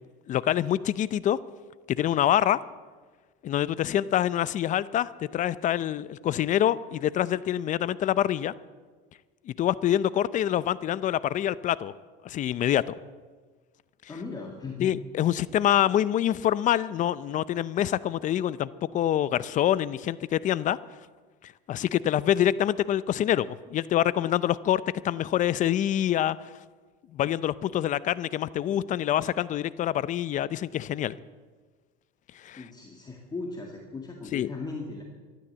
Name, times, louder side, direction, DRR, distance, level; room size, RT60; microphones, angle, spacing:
voice 1, 0.3-1.4 2.0-2.6 3.4-8.5 9.5-11.9 12.2-12.9 14.8-20.8 21.7-26.4 27.1-31.2 32.4-32.6 34.3-34.5, left 11 dB, 35° left, 18 dB, 0.5 m, -26 dB
voice 2, 14.1-14.9 32.6-35.0, left 3 dB, 20° left, 0 dB, 1.9 m, -37 dB
13.0 x 12.0 x 8.0 m, 1.4 s
supercardioid pair, 120°, 21 cm